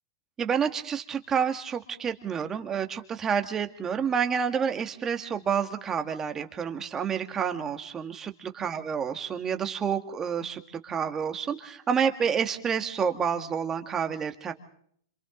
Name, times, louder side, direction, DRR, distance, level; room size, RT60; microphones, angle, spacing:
voice 1, 0.4-14.5, right 7 dB, 20° right, 7 dB, 1.8 m, -29 dB
28.5 x 27.0 x 3.8 m, 0.64 s
supercardioid pair, 140°, 2 cm